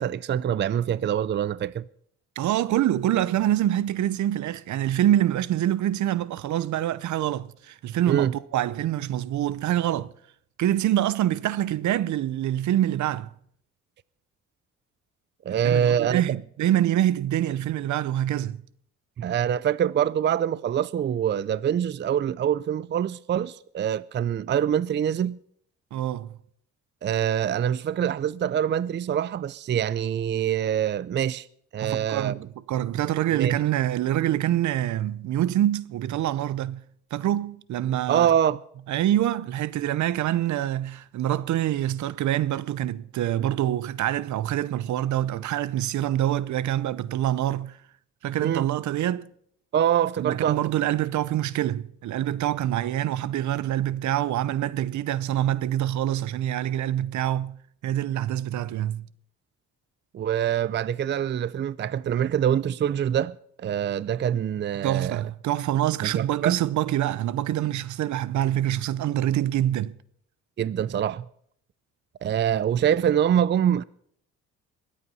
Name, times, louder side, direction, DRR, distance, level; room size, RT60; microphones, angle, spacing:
voice 1, 0.0-1.8 8.1-8.3 15.5-16.2 19.2-25.4 27.0-31.5 31.7-32.4 33.3-33.6 38.1-38.6 48.4-48.7 49.7-50.6 60.1-65.3 66.0-66.6 70.6-71.2 72.2-73.8, right 9 dB, 35° right, 0.5 m, -25 dB
voice 2, 2.4-10.1 10.6-13.3 15.5-18.6 25.9-26.3 31.8-32.4 32.7-36.8 37.1-38.3 38.9-47.8 48.2-49.3 50.2-57.6 57.8-59.1 64.8-69.9, right 12 dB, 70° right, 0.8 m, -25 dB
21.5 x 8.6 x 5.5 m
cardioid pair, 90°, 30 cm